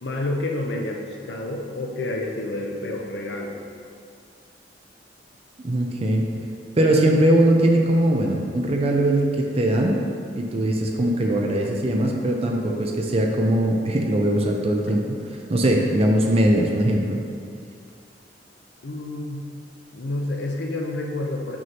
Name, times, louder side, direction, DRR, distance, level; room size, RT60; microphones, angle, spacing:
voice 1, 0.0-3.6 18.8-19.4 19.9-21.6, left 2 dB, 70° left, 1 dB, 0.7 m, -29 dB
voice 2, 5.6-6.2 6.8-10.0 10.3-15.2 15.5-17.2, right 1 dB, 35° right, 1 dB, 0.5 m, -20 dB
6.2 x 5.3 x 2.9 m, 2.2 s
head